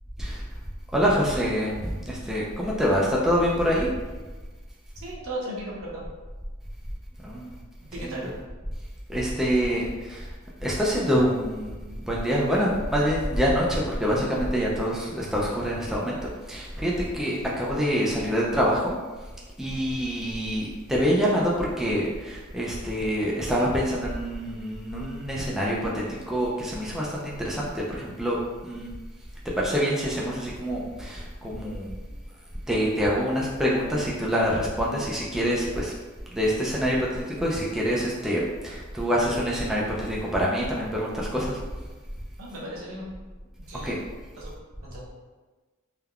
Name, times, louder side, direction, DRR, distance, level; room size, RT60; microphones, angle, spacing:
voice 1, 0.9-3.9 7.2-7.6 8.0-8.2 9.1-10.3 10.6-16.2 16.5-19.0 19.6-28.4 28.6-28.9 29.6-31.9 32.7-35.9 36.3-41.6 43.8-44.0, equal, ahead, -5 dB, 0.3 m, -26 dB
voice 2, 5.0-6.0 7.9-8.3 42.4-43.1 43.7-44.0 44.4-44.5 44.8-45.0, right 1 dB, 75° right, -4 dB, 0.8 m, -36 dB
3.3 x 2.2 x 2.3 m, 1.3 s
head